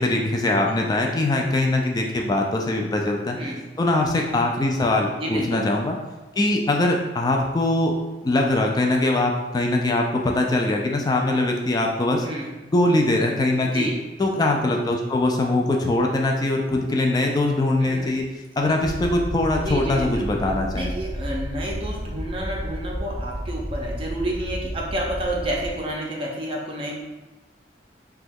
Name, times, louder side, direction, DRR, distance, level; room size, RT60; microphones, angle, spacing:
voice 1, 0.0-3.4 3.8-6.0 6.4-7.9 8.2-12.3 12.7-13.9 14.2-18.3 18.6-20.9, left 2 dB, 20° left, 1 dB, 0.3 m, -22 dB
voice 2, 0.7-1.1 3.3-3.6 5.1-5.6 12.2-12.5 13.6-13.9 17.9-18.2 19.6-27.0, right 1 dB, 30° right, -2 dB, 0.5 m, -30 dB
sound 1, 18.8-25.8, equal, 65° left, 0.6 m, -32 dB
2.9 x 2.3 x 3.4 m, 1.1 s
head